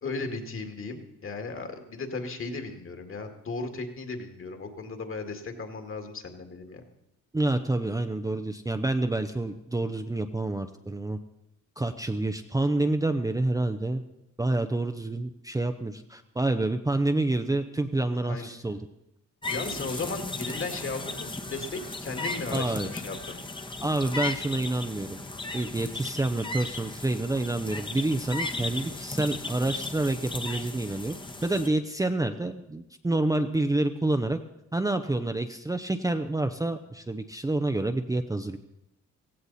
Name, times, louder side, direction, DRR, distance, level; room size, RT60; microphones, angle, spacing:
voice 1, 0.0-6.8 18.1-18.5 19.5-23.4 28.5-29.0, left 3 dB, 45° left, 5 dB, 2.2 m, -36 dB
voice 2, 7.3-11.2 11.8-14.0 14.4-18.8 22.5-22.9 23.8-25.2 25.5-34.4 34.7-38.6, right 2 dB, 10° right, 6 dB, 0.7 m, -28 dB
sound 1, 19.4-31.7, left 2 dB, 15° left, 1.2 m, -36 dB
16.5 x 15.5 x 4.2 m, 0.85 s
cardioid pair, 90°, 30 cm